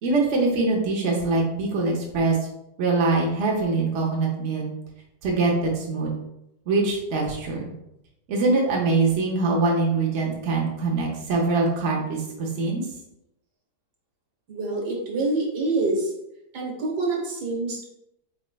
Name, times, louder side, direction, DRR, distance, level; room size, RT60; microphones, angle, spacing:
voice 1, 0.0-2.4 2.8-4.6 5.2-6.1 6.7-7.7 8.3-12.8, right 3 dB, 50° right, -2 dB, 1.0 m, -23 dB
voice 2, 14.5-16.1 16.5-17.8, right 2 dB, 70° right, -1 dB, 1.7 m, -26 dB
4.6 x 4.2 x 2.2 m, 0.84 s
omnidirectional pair, 1.8 m